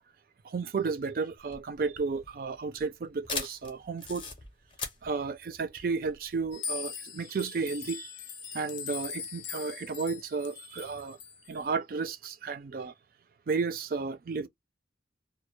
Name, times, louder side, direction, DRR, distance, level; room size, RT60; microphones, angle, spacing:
voice 1, 0.4-4.3 5.0-11.2 11.5-12.9 13.5-14.5, right 4 dB, 50° right, 0.3 m, -33 dB
sound 1, 1.4-6.5, left 4 dB, 30° left, 0.6 m, -40 dB
sound 2, 6.5-11.5, left 7 dB, 80° left, 0.5 m, -41 dB
2.2 x 2.0 x 3.0 m
head